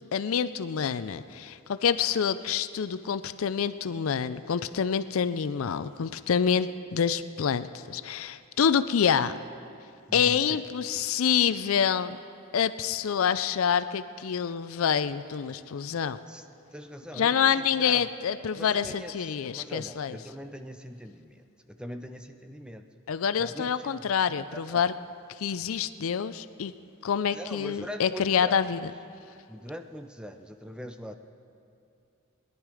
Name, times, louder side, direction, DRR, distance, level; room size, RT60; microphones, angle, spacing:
voice 1, 0.0-9.3 10.1-12.2 12.5-16.2 17.2-20.1 23.1-24.9 25.4-26.7 27.0-28.9, left 7 dB, 70° left, 13 dB, 0.4 m, -27 dB
voice 2, 10.1-10.6 16.3-18.1 18.5-22.9 23.4-24.9 27.3-28.7 29.5-31.2, equal, 5° right, 8 dB, 0.5 m, -42 dB
20.5 x 11.0 x 4.9 m, 2.5 s
head